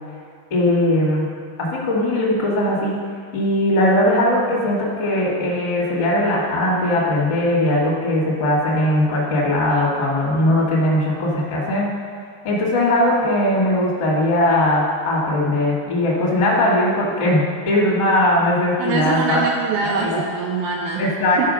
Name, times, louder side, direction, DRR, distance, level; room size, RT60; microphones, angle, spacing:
voice 1, 0.5-1.3 1.6-3.0 3.3-11.9 12.4-19.4 19.8-20.2 21.0-21.5, left 1 dB, 45° left, -5 dB, 1.3 m, -19 dB
voice 2, 18.8-21.5, right 5 dB, 80° right, 0 dB, 2.3 m, -24 dB
13.5 x 4.7 x 6.3 m, 2.2 s
omnidirectional pair, 5.1 m